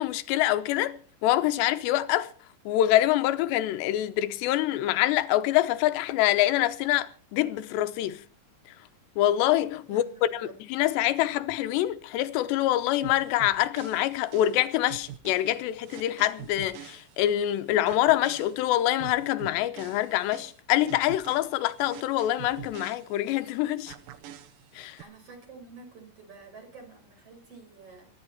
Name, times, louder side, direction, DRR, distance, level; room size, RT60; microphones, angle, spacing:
voice 1, 0.0-2.3 2.7-8.2 9.2-23.9 24.8-25.0, left 14 dB, 85° left, 3.1 m, -25 dB
voice 2, 9.9-10.6 25.0-28.1, right 4 dB, 35° right, 5.7 m, -49 dB
sound 1, 13.0-17.5 17.9-23.5 23.9-25.0, right 11 dB, 65° right, 2.4 m, -45 dB
24.5 x 11.0 x 4.3 m
omnidirectional pair, 4.8 m